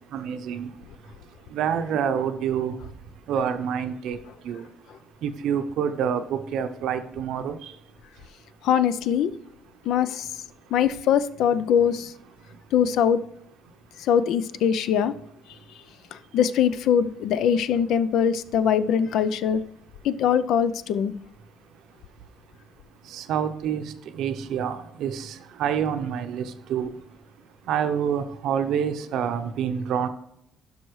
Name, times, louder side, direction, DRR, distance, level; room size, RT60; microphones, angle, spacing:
voice 1, 0.1-0.7 1.5-2.7 3.3-4.2 4.5-4.6 5.2-7.6 23.1-23.8 24.1-25.3 25.6-26.4 26.7-26.9 27.7-30.1, right 8 dB, 75° right, 0.7 m, -27 dB
voice 2, 8.6-9.3 9.9-10.3 10.7-12.1 12.7-13.2 14.1-15.1 16.3-19.6 20.0-21.1, left 8 dB, 75° left, 0.4 m, -22 dB
11.5 x 5.5 x 3.1 m
cardioid pair, 85°, 0 cm